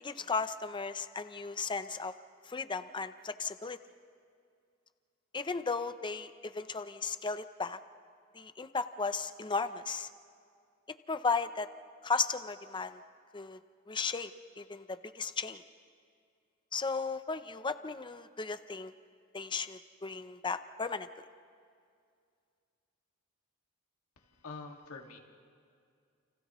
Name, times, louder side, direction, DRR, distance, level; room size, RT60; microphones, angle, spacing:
voice 1, 0.0-2.1 2.5-3.8 5.3-7.8 8.3-10.1 11.1-11.7 12.0-13.0 13.3-13.6 13.9-14.3 14.6-15.6 16.7-18.9 19.3-21.1, left 4 dB, 20° left, 11 dB, 0.6 m, -35 dB
voice 2, 24.4-25.2, left 4 dB, 80° left, 2 dB, 2.1 m, -45 dB
29.5 x 29.5 x 3.1 m, 2.3 s
head